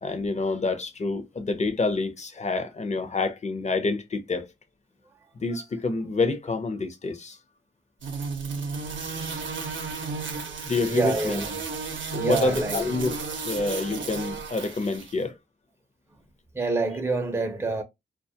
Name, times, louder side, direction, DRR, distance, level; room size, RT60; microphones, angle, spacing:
voice 1, 0.0-4.5 5.3-7.4 10.7-11.4 12.1-13.2 13.4-15.3, left 3 dB, 35° left, 0.6 m, -27 dB
sound 1, 8.0-15.1, right 4 dB, 80° right, 0.6 m, -33 dB
voice 2, 10.9-11.5 12.1-13.0 16.5-17.8, right 3 dB, 15° right, 0.5 m, -27 dB
2.3 x 2.0 x 2.7 m
cardioid pair, 60°, 20 cm